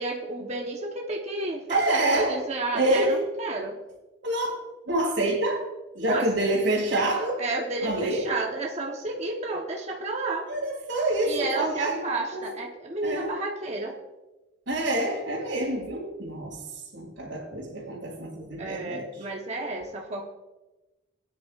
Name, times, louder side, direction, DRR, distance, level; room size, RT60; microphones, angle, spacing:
voice 1, 0.0-3.8 6.0-6.2 7.4-10.5 11.2-14.0 18.6-20.2, right 2 dB, 35° right, -1 dB, 1.1 m, -31 dB
voice 2, 1.7-2.4 2.7-3.2 4.2-4.5 4.9-5.6 5.9-7.4 7.8-8.3 10.5-12.0 12.3-12.5 13.0-13.4 14.7-16.6 16.9-19.1, right 1 dB, 80° right, -6 dB, 2.6 m, -27 dB
19.5 x 9.3 x 2.5 m, 1.1 s
head